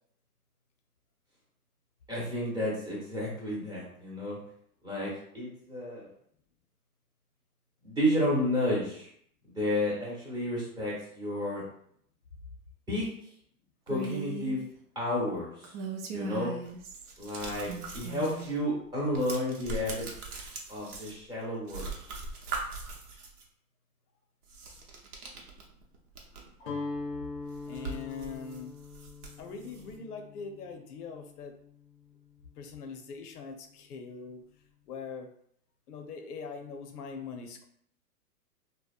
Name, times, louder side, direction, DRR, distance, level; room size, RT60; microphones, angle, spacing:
voice 1, 2.1-4.4 4.8-6.0 7.8-9.1 9.5-11.6 12.9-13.1 13.9-14.6 14.9-15.7 16.1-16.5 17.2-20.1 20.7-21.9, left 1 dB, 10° right, -6 dB, 0.8 m, -31 dB
Female speech woman speaking, 13.9-14.6 15.6-17.1 17.6-18.5, right 3 dB, 55° right, 0.5 m, -38 dB
sound 1, 16.7-18.6 18.9-21.4 21.7-23.4 24.4-26.6 26.9-27.0 27.4-30.0, right 3 dB, 80° right, 0.8 m, -42 dB
Guitar, 26.6-32.6, left 3 dB, 40° left, 0.6 m, -42 dB
voice 2, 27.6-28.7 29.4-31.6 32.6-34.4 34.9-35.3 35.9-37.7, left 5 dB, 85° left, 5 dB, 0.6 m, -42 dB
2.7 x 2.1 x 2.4 m, 0.67 s
hypercardioid pair, 140°, 45 cm